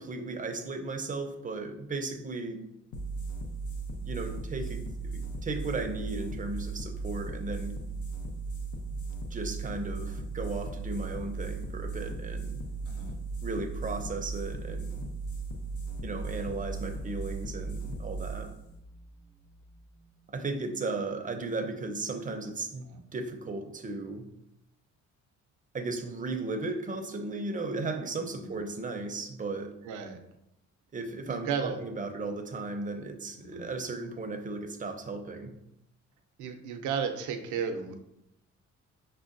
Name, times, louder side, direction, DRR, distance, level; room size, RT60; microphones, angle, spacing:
voice 1, 0.0-2.6 4.0-7.8 9.3-12.6 13.4-15.1 16.0-18.5 20.3-24.3 25.7-29.7 30.9-35.5, right 3 dB, 25° right, 5 dB, 0.6 m, -36 dB
sound 1, 2.9-20.0, right 3 dB, 70° left, 0.7 m, -37 dB
voice 2, 28.2-28.6 29.8-30.2 31.3-31.8 33.4-33.7 36.4-38.0, right 6 dB, 80° right, 6 dB, 0.6 m, -34 dB
6.2 x 2.2 x 2.5 m, 0.84 s
cardioid pair, 90°, 30 cm